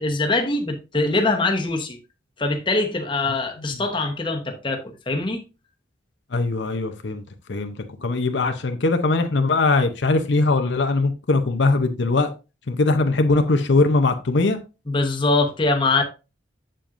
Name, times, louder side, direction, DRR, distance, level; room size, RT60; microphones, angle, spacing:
voice 1, 0.0-2.0 2.4-5.4 14.9-16.0, left 2 dB, 25° left, 1.0 m, -23 dB
voice 2, 6.3-7.2 7.5-7.7 8.0-12.3 12.7-14.6, left 3 dB, 75° left, 0.7 m, -20 dB
7.6 x 7.0 x 2.5 m
head